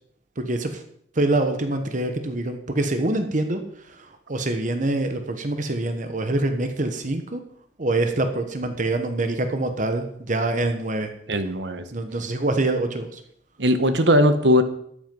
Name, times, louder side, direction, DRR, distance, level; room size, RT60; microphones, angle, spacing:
voice 1, 0.4-0.8 1.1-7.4 7.8-11.1 11.9-13.2, right 2 dB, 45° right, 7 dB, 1.2 m, -25 dB
voice 2, 11.3-11.8 13.6-14.6, equal, 75° right, 9 dB, 1.3 m, -19 dB
13.0 x 8.7 x 5.4 m, 0.70 s
head